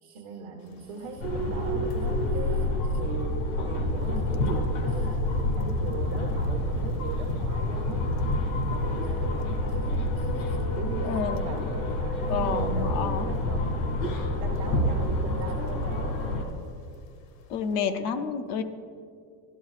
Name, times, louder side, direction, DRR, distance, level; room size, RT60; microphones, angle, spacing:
voice 1, 0.0-2.6 2.9-8.0 8.6-14.1 14.4-16.5, right 4 dB, 40° right, 1 dB, 0.9 m, -39 dB
sound 1, 0.7-11.6 12.0-15.4 15.6-15.9 16.2-17.0 17.3-17.5, left 3 dB, 65° left, 1.0 m, -39 dB
sound 2, 1.2-16.4, left 1 dB, 85° left, 2.0 m, -28 dB
voice 2, 11.0-11.6 12.3-13.3 17.5-18.6, left 6 dB, 40° left, 8 dB, 0.5 m, -30 dB
13.0 x 12.5 x 2.4 m, 2.3 s
cardioid pair, 175°, 41 cm